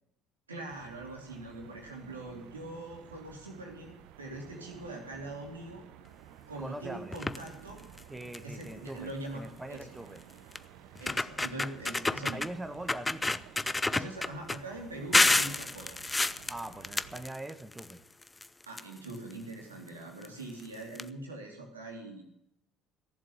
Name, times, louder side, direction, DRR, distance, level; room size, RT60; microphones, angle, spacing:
voice 1, 0.5-5.8 6.5-7.8 8.4-9.9 11.0-12.4 13.9-16.0 18.7-22.2, right 2 dB, 90° right, 1 dB, 2.7 m, -42 dB
sound 1, 0.7-17.3, right 11 dB, 65° right, 0.9 m, -53 dB
voice 2, 6.6-7.2 8.1-10.2 12.3-13.4 16.5-18.0, right 1 dB, 10° right, 8 dB, 1.3 m, -42 dB
sound 2, 7.1-7.5 8.0-8.1 8.3-8.6 9.8-9.9 10.5-10.6 11.0-12.5 12.9-14.6 15.1-17.9 18.2-19.3 20.2-20.3 20.6-20.7 20.9-21.0, left 2 dB, 15° left, 0.6 m, -29 dB
14.5 x 7.5 x 9.6 m, 0.82 s
hypercardioid pair, 60°, 0 cm